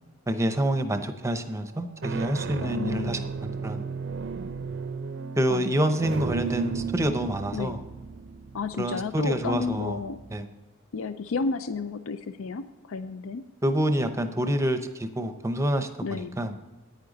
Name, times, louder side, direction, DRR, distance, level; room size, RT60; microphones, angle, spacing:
voice 1, 0.3-3.8 5.4-7.8 8.7-10.0 10.3-10.5 13.6-16.5, right 1 dB, 15° right, 8 dB, 0.7 m, -27 dB
sound 1, 1.8-10.4, right 5 dB, 55° right, 0.5 m, -35 dB
voice 2, 2.6-3.3 5.5-5.9 7.5-7.8 8.5-10.2 10.9-13.4 16.0-16.4, left 4 dB, 70° left, 11 dB, 0.4 m, -32 dB
9.9 x 9.4 x 4.0 m, 1.2 s
head